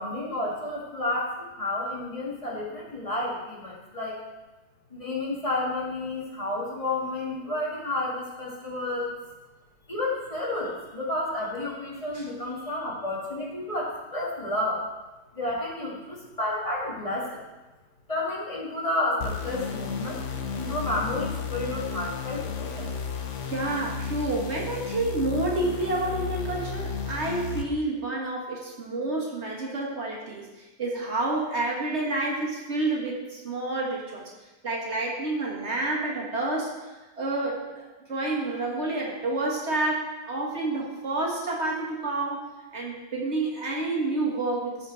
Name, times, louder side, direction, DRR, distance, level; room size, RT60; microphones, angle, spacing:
voice 1, 0.0-4.2 4.9-9.1 9.9-14.8 15.3-17.4 18.1-20.2 20.5-22.9, left 2 dB, 30° left, -4 dB, 1.8 m, -31 dB
sound 1, 19.2-27.7, left 6 dB, 85° left, 1.2 m, -33 dB
voice 2, 23.5-34.2 34.6-36.7 37.2-44.9, right 2 dB, 70° right, -3 dB, 2.1 m, -29 dB
14.0 x 4.9 x 4.3 m, 1.1 s
omnidirectional pair, 1.2 m